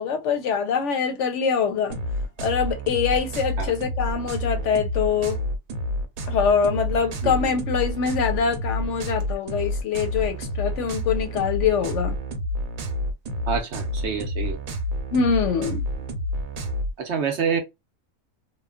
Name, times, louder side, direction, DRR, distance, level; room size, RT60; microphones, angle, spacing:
voice 1, 0.0-2.0 2.4-5.4 6.3-12.1 15.1-15.8, left 6 dB, 70° left, 0.8 m, -24 dB
sound 1, 1.9-16.9, left 1 dB, 85° right, 1.1 m, -29 dB
voice 2, 13.5-14.6 17.0-17.6, right 6 dB, 60° right, 0.8 m, -27 dB
3.0 x 2.1 x 2.2 m
omnidirectional pair, 1.4 m